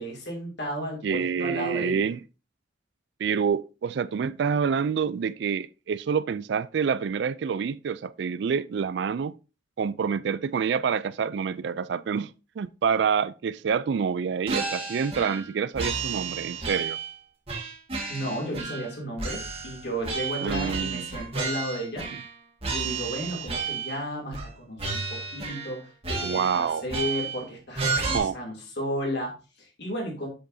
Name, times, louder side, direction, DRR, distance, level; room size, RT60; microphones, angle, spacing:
voice 1, 0.0-2.0 18.1-22.1 22.7-30.3, equal, 60° left, 2.8 m, -33 dB
voice 2, 1.0-2.2 3.2-9.3 9.8-17.0 20.4-21.1 26.2-26.8 28.1-28.4, right 6 dB, 60° right, 0.3 m, -27 dB
sound 1, 14.5-15.5 15.8-17.1 17.5-18.9 19.2-22.3 22.6-24.0 24.3-24.5 24.8-25.8 26.0-27.4 27.8-28.2, right 4 dB, 30° right, 1.5 m, -32 dB
7.6 x 6.9 x 2.7 m
head